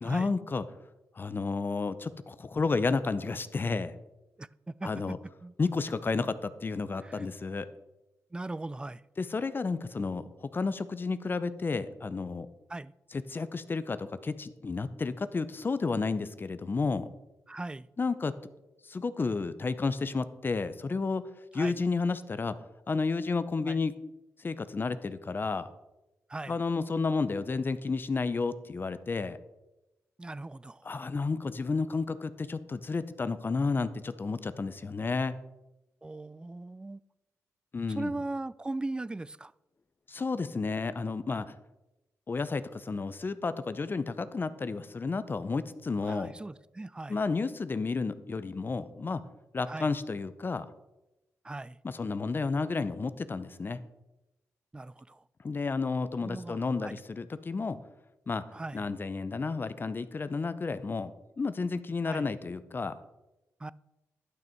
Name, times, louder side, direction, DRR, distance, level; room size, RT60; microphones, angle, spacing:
voice 1, 0.0-0.6 1.2-3.9 4.8-5.2 5.6-7.7 9.2-12.5 13.1-17.1 18.0-18.3 18.8-21.2 21.5-22.6 22.9-23.9 24.4-25.7 26.5-29.4 30.8-35.3 37.7-38.1 40.1-41.5 42.3-46.3 47.1-49.2 49.5-50.7 51.8-53.8 55.4-57.8 58.3-58.4 58.7-61.1 61.4-63.0, left 4 dB, 35° left, 0.7 m, -31 dB
voice 2, 4.4-5.2 5.4-5.5 7.0-7.2 8.3-9.0 12.7-12.9 17.5-17.9 21.6-21.7 23.7-23.8 26.3-26.6 30.2-30.9 36.0-37.0 38.0-39.5 46.0-47.2 49.7-49.9 51.4-51.8 54.7-55.2 56.2-57.0 58.5-58.8 62.1-62.3 63.6-63.7, right 2 dB, 15° right, 0.3 m, -39 dB
11.5 x 6.0 x 4.5 m
cardioid pair, 65°, 6 cm